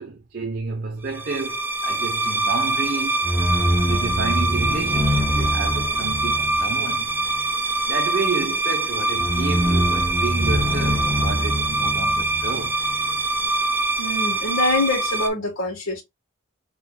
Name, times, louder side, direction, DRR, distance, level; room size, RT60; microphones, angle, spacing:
voice 1, 0.0-3.2 3.9-7.1 7.9-12.8, right 4 dB, 45° right, 0.7 m, -30 dB
sound 1, 1.1-15.3, right 1 dB, 10° right, 0.6 m, -22 dB
voice 2, 14.0-16.0, left 2 dB, 70° left, 1.4 m, -24 dB
6.1 x 2.9 x 2.2 m
head